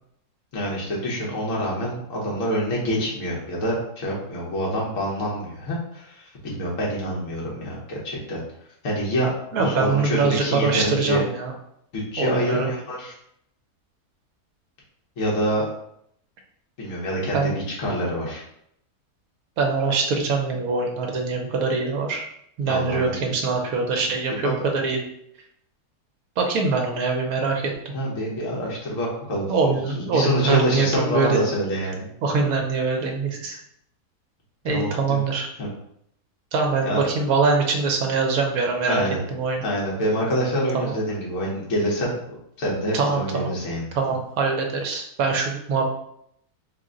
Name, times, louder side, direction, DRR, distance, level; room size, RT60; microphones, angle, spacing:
voice 1, 0.5-8.4 8.8-11.2 11.9-13.1 15.2-15.7 16.8-18.4 22.6-23.3 24.4-24.5 27.9-32.1 34.6-35.2 35.6-35.7 36.8-37.1 38.9-39.2 39.6-44.2, equal, 55° left, -4 dB, 1.4 m, -26 dB
voice 2, 9.5-11.5 12.2-12.7 17.3-17.6 19.6-22.3 22.6-25.0 26.4-27.6 29.5-31.4 32.2-33.6 34.6-35.5 36.5-39.0 39.3-39.6 40.7-40.9 42.9-43.5 43.9-45.9, right 4 dB, 70° right, 2 dB, 1.1 m, -23 dB
3.7 x 2.1 x 3.7 m, 0.73 s
omnidirectional pair, 1.7 m